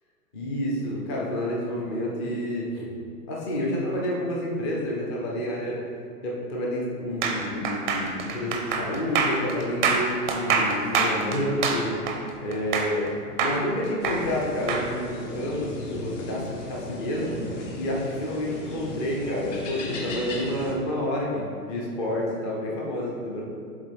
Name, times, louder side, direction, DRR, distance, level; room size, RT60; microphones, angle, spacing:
voice 1, 0.3-2.9 3.3-5.8 6.2-12.0 12.4-13.1 13.4-23.4, left 1 dB, 20° left, -3 dB, 0.5 m, -29 dB
sound 1, 7.2-13.1 13.4-14.9, right 5 dB, 30° right, 0.5 m, -25 dB
sound 2, 14.0-20.7, left 2 dB, 50° left, 1.1 m, -37 dB
7.2 x 3.9 x 3.4 m, 2.3 s
figure-of-eight pair, 120°, 48 cm